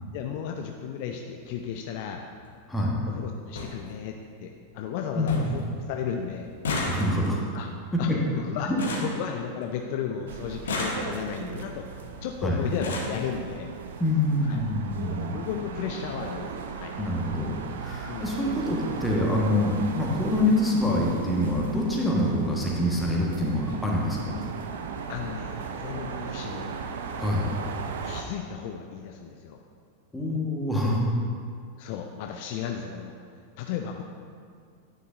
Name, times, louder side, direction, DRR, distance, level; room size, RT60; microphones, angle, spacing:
voice 1, 0.1-2.2 3.1-6.5 7.5-7.7 8.0-8.7 9.0-11.9 12.2-13.7 14.5-14.6 15.1-16.5 16.7-16.9 18.1-18.3 21.9-22.1 25.1-26.8 28.0-29.6 31.8-33.1 33.6-34.0, left 8 dB, 50° left, 3 dB, 0.4 m, -34 dB
sound 1, 1.4-1.6 2.8-2.9 3.2-3.3 3.5-3.7 4.2-4.7 4.9-5.0 5.3-5.6 5.9-9.9 10.5-11.5 12.3-12.4 12.6-13.2 14.2-14.3 14.6-14.8 15.1-15.2, left 2 dB, 65° left, 1.0 m, -33 dB
voice 2, 5.1-5.5 6.9-7.4 7.9-8.2 8.6-8.8 12.4-12.6 14.0-15.3 17.0-17.5 17.8-24.4 27.2-27.5 30.1-31.0, left 1 dB, 10° left, -3 dB, 1.3 m, -25 dB
sound 2, 10.3-28.2, right 5 dB, 60° right, 0.5 m, -37 dB
9.3 x 6.6 x 2.6 m, 2.1 s
figure-of-eight pair, 90°, 0 cm